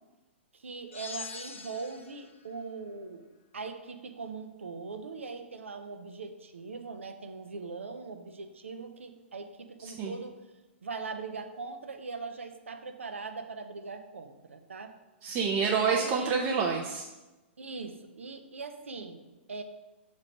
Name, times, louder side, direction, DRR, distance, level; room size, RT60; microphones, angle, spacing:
voice 1, 0.5-3.3 3.5-10.4 10.8-14.9 16.0-16.4 17.6-19.2 19.5-19.6, right 4 dB, 90° right, 7 dB, 0.6 m, -41 dB
sound 1, 0.9-2.3, left 5 dB, 80° left, 0.6 m, -43 dB
voice 2, 9.8-10.1 15.2-17.0, right 5 dB, 35° right, -1 dB, 0.6 m, -28 dB
6.1 x 3.2 x 5.1 m, 1.1 s
hypercardioid pair, 125°, 7 cm